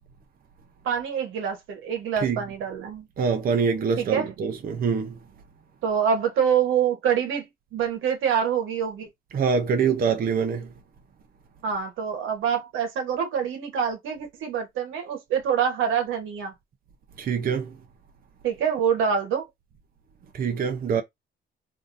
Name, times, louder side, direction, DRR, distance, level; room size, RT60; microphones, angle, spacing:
voice 1, 0.8-3.1 4.0-4.3 5.8-9.1 11.6-16.5 18.4-19.4, right 7 dB, 85° right, 1.1 m, -26 dB
voice 2, 3.2-5.1 9.3-10.7 17.2-17.8 20.3-21.0, right 6 dB, 45° right, 0.7 m, -24 dB
3.5 x 2.7 x 2.6 m
cardioid pair, 90°, 20 cm